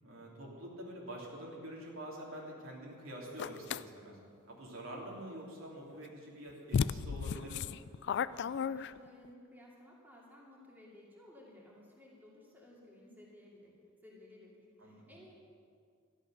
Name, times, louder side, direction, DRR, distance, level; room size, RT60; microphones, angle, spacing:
voice 1, 0.0-4.2 4.5-7.7 14.8-15.1, right 1 dB, 70° right, -3 dB, 3.2 m, -46 dB
sound 1, 3.4-3.8 6.0-6.1 6.7-9.3, left 6 dB, 55° left, 0.3 m, -34 dB
voice 2, 8.2-13.7 14.0-15.3, left 1 dB, 10° right, -5 dB, 2.5 m, -57 dB
13.0 x 11.5 x 6.5 m, 2.2 s
head